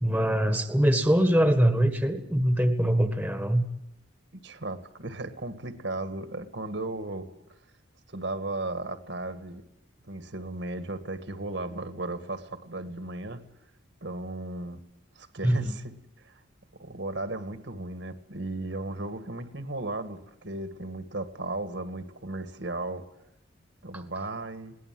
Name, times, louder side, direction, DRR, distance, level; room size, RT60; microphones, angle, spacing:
voice 1, 0.0-3.6 15.4-15.8, equal, 5° right, 8 dB, 1.6 m, -23 dB
voice 2, 4.4-7.3 8.1-9.6 10.1-13.4 14.0-14.8 15.2-15.9 16.2-16.4 16.8-23.0 23.8-24.7, right 2 dB, 60° right, 9 dB, 1.8 m, -35 dB
21.5 x 18.5 x 7.7 m, 0.84 s
head